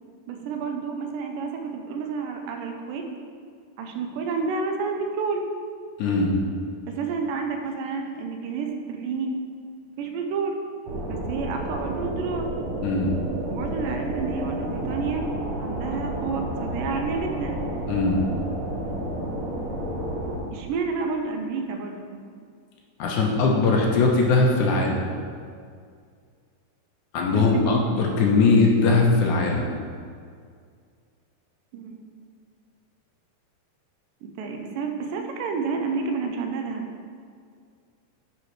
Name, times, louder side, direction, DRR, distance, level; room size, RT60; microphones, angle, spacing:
voice 1, 0.3-3.0 3.8-5.4 6.9-9.3 10.0-10.5 11.1-12.5 13.5-15.3 15.6-17.6 20.5-22.3 27.3-27.7 31.7-32.2 34.2-36.8, right 5 dB, 85° right, 4 dB, 2.3 m, -30 dB
voice 2, 6.0-6.3 12.8-13.1 17.9-18.2 23.0-25.0 27.1-29.6, left 3 dB, 70° left, -1 dB, 2.1 m, -20 dB
sound 1, 10.9-20.4, right 1 dB, 65° right, 1.4 m, -31 dB
9.6 x 5.6 x 3.2 m, 2.1 s
omnidirectional pair, 4.0 m